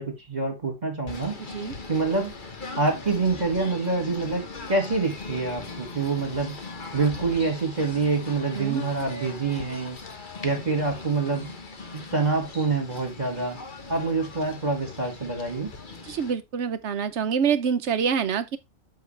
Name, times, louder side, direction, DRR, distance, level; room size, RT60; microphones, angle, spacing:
voice 1, 0.0-1.4 1.9-2.3 2.8-4.4 4.7-6.6 6.9-10.0 10.4-11.5 11.9-13.6 13.9-15.7, right 3 dB, 30° right, 2.1 m, -26 dB
Singing / Bird, 1.0-16.3, left 3 dB, 40° left, 1.3 m, -40 dB
voice 2, 16.1-18.6, right 7 dB, 60° right, 1.1 m, -26 dB
8.3 x 6.4 x 3.3 m
omnidirectional pair, 1.4 m